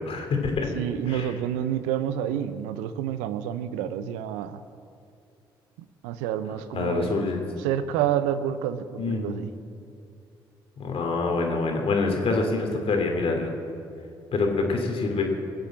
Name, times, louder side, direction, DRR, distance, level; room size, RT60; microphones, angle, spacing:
voice 1, 0.0-0.7 1.1-1.3 6.7-7.4 9.0-9.3 10.8-13.5 14.3-15.2, left 3 dB, 55° left, 2 dB, 3.2 m, -26 dB
voice 2, 0.7-4.6 6.0-7.3 7.6-9.5, right 10 dB, 75° right, 12 dB, 0.7 m, -29 dB
22.5 x 7.6 x 7.6 m, 2.5 s
hypercardioid pair, 45°, 12 cm